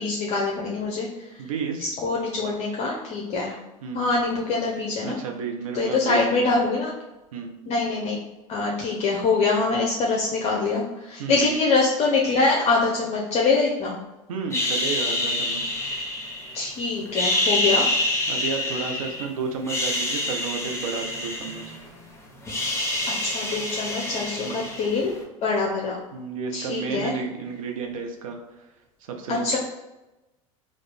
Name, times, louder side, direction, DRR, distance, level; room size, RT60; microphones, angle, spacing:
voice 1, 0.0-1.4 1.8-3.6 3.9-5.2 5.7-6.9 7.7-8.2 8.5-14.0 16.5-17.9 23.2-25.1 25.4-26.0 26.5-27.1 29.3-29.6, left 3 dB, 40° left, -2 dB, 0.7 m, -24 dB
voice 2, 1.4-1.9 3.8-4.1 5.0-6.5 7.3-7.5 11.2-11.6 14.3-15.8 18.3-21.8 24.4-24.7 26.1-28.4 29.0-29.6, right 5 dB, 75° right, 4 dB, 0.7 m, -32 dB
sound 1, 14.5-16.7 17.1-19.2 19.6-22.0 22.2-25.1, left 1 dB, 15° left, 1.1 m, -27 dB
3.9 x 2.5 x 3.4 m, 1.0 s
hypercardioid pair, 85°, 18 cm